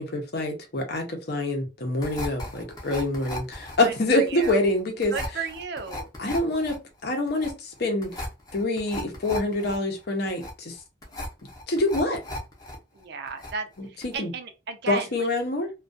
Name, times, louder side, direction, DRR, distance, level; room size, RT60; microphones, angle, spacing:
voice 1, 0.0-5.1 6.2-6.8 7.0-8.2 8.5-10.7 11.7-12.2 13.8-14.3 14.9-15.7, left 2 dB, 55° left, 0.7 m, -26 dB
sound 1, 2.0-12.8 13.0-13.7 14.0-14.2, left 1 dB, 20° left, 0.7 m, -37 dB
voice 2, 3.8-4.6 5.1-6.1 12.9-13.7 13.9-15.1, right 5 dB, 60° right, 0.5 m, -34 dB
2.3 x 2.3 x 2.5 m
head